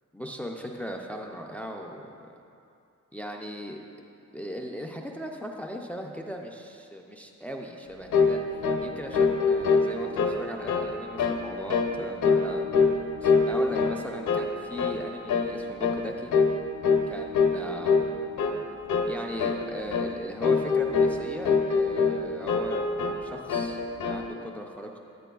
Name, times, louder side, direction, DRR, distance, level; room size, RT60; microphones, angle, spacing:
voice 1, 0.1-2.1 3.1-3.8 4.3-12.7 13.2-16.3 17.1-18.0 19.1-25.0, equal, 5° left, 2 dB, 0.3 m, -38 dB
sound 1, 8.1-8.4 8.6-8.9 9.1-10.4 10.7-10.9 11.2-11.4 11.7-11.9 12.2-13.0 13.2-14.0 14.3-14.5 14.8-15.0 15.3-15.5 15.8-16.0 16.3-16.6 16.8-17.1 17.3-17.6 17.9-18.1 18.4-18.6 18.9-19.1 19.4-19.6 19.9-20.1 20.4-21.2 21.5-22.2 22.5-23.2 23.5-24.2, left 5 dB, 75° left, 0.6 m, -23 dB
9.9 x 9.1 x 2.3 m, 2.5 s
wide cardioid pair, 165°, 30 cm